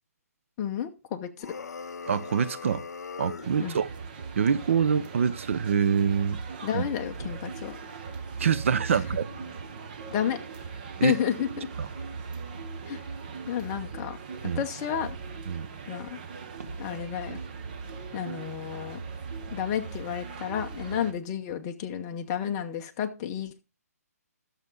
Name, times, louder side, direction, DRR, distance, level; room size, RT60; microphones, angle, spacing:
voice 1, 0.6-1.5 3.6-3.8 6.6-7.8 10.1-10.4 11.0-11.7 12.9-13.0 13.5-14.2 14.5-15.1 15.9-16.2 16.8-17.4 18.1-19.0 19.5-23.6, left 9 dB, 20° left, 0.8 m, -31 dB
sound 1, 1.4-3.6, left 5 dB, 85° left, 0.7 m, -40 dB
voice 2, 2.1-2.8 3.2-3.9 4.4-6.4 6.7-6.8 8.4-9.3 11.0-11.2 11.8-11.9 14.4-14.6 15.5-15.7, right 7 dB, 50° right, 0.7 m, -25 dB
sound 2, 3.4-21.1, right 5 dB, 30° right, 1.0 m, -40 dB
Motor vehicle (road), 7.1-10.6 11.9-15.4 16.5-19.8 20.7-21.1, right 2 dB, 90° right, 2.1 m, -49 dB
12.0 x 6.8 x 3.8 m
hypercardioid pair, 165°, 9 cm